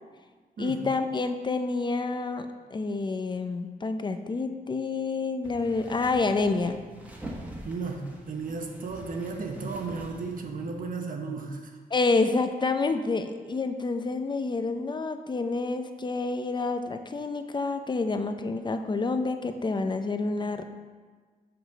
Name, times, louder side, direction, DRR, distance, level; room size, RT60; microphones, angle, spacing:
voice 1, 0.6-2.5 2.7-6.8 11.9-20.6, left 3 dB, 30° left, 8 dB, 0.5 m, -28 dB
sound 1, 5.4-10.9, right 1 dB, 10° right, 1.2 m, -44 dB
voice 2, 7.6-11.8, right 4 dB, 60° right, 3 dB, 1.0 m, -34 dB
6.0 x 5.1 x 6.4 m, 1.5 s
wide cardioid pair, 135°, 16 cm